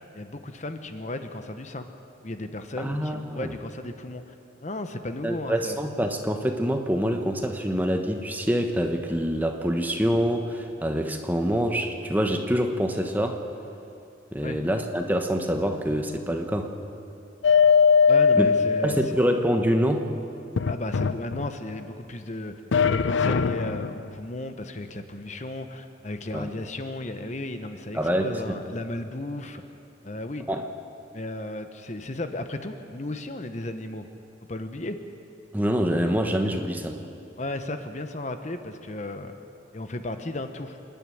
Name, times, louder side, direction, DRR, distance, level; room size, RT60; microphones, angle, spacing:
voice 1, 0.1-1.9 2.2-4.3 4.6-5.8 14.4-14.6 18.1-19.0 20.7-22.5 22.9-29.6 30.0-30.4 31.1-34.1 34.5-35.0 37.4-39.4 39.7-40.8, left 1 dB, 35° left, 8 dB, 0.9 m, -34 dB
voice 2, 2.8-3.5 5.2-13.4 14.3-16.7 18.4-18.5 18.8-20.0 26.3-26.5 27.9-28.6 30.5-30.6 35.5-37.0, equal, 10° right, 4 dB, 1.0 m, -25 dB
sound 1, 17.4-19.4 20.6-21.8 22.7-24.1, left 6 dB, 80° left, 0.5 m, -21 dB
27.0 x 11.0 x 9.3 m, 2.9 s
head